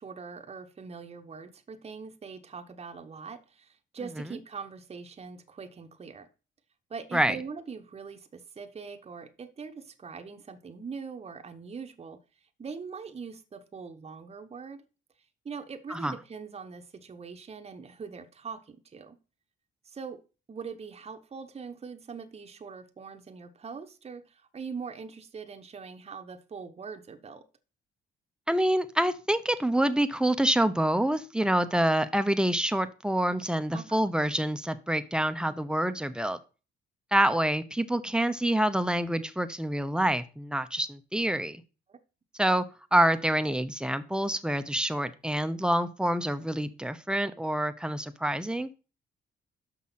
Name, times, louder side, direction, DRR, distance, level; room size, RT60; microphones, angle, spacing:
voice 1, 0.0-6.3 6.9-12.2 12.6-14.8 15.4-19.2 19.8-20.2 20.5-27.4 33.7-34.0 41.9-42.0, right 5 dB, 30° right, 7 dB, 0.9 m, -42 dB
voice 2, 28.5-36.4 37.1-41.6 42.4-42.6 42.9-48.7, right 1 dB, 5° right, 10 dB, 0.7 m, -27 dB
6.2 x 6.0 x 5.7 m, 0.34 s
cardioid pair, 90°, 20 cm